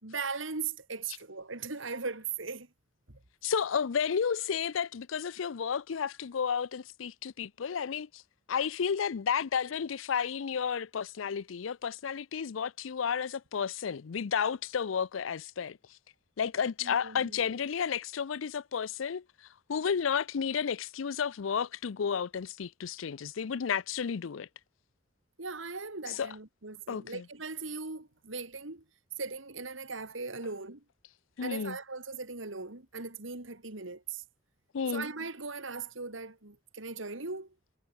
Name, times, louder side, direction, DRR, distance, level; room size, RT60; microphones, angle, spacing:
voice 1, 0.0-2.7 3.1-3.2 16.8-17.4 25.4-28.8 29.2-30.8 31.4-34.2 34.9-37.5, right 4 dB, 80° right, 2.8 m, -39 dB
voice 2, 3.4-8.2 8.5-16.0 16.4-24.5 26.1-26.3 26.9-27.2 31.4-31.8 34.7-35.1, left 7 dB, 90° left, 0.5 m, -32 dB
head